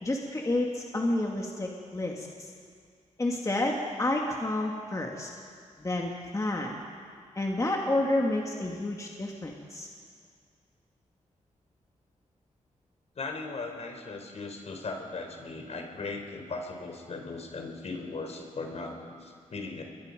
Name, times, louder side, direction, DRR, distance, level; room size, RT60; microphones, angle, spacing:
voice 1, 0.0-2.5 3.2-5.3 5.8-6.8 7.4-9.9, left 1 dB, 25° left, 0 dB, 2.4 m, -30 dB
voice 2, 13.2-19.8, left 3 dB, 60° left, 3 dB, 3.9 m, -38 dB
28.5 x 22.5 x 5.3 m, 2.1 s
cardioid pair, 85°, 13 cm